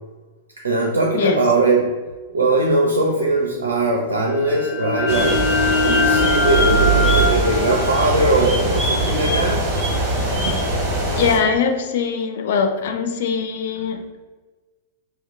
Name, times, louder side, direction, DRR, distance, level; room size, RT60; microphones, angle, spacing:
voice 1, 0.6-2.0 2.3-5.4 5.8-9.6, right 2 dB, 75° right, 0 dB, 0.4 m, -20 dB
voice 2, 1.1-1.5 11.1-14.2, left 6 dB, 60° left, 5 dB, 0.4 m, -21 dB
sound 1, 3.4-10.1, right 6 dB, 85° left, 0.9 m, -27 dB
sound 2, 4.3-9.8, left 3 dB, 5° left, 1.1 m, -23 dB
sound 3, 5.1-11.4, right 1 dB, 30° right, 1.3 m, -22 dB
2.8 x 2.2 x 3.5 m, 1.3 s
figure-of-eight pair, 95°, 0 cm